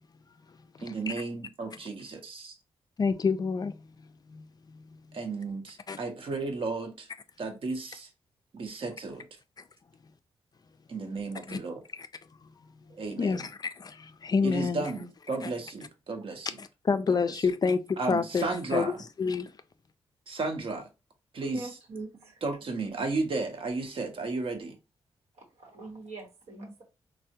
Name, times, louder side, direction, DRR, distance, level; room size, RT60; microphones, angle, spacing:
voice 1, 0.8-2.5 5.1-7.1 7.4-8.1 8.5-9.3 10.9-11.8 12.9-13.5 14.4-16.6 17.3-17.5 18.0-18.9 20.3-20.9 21.3-21.7 22.4-24.8, right 3 dB, 55° right, 0.8 m, -34 dB
voice 2, 3.0-3.9 4.3-5.0 5.9-6.0 11.5-11.6 12.0-12.1 12.4-12.5 13.2-14.9 16.6-18.9 19.2-19.5, left 5 dB, 40° left, 0.3 m, -28 dB
voice 3, 21.5-22.4 25.3-26.8, right 3 dB, 85° right, 0.9 m, -43 dB
3.3 x 2.1 x 2.7 m
cardioid pair, 65°, 11 cm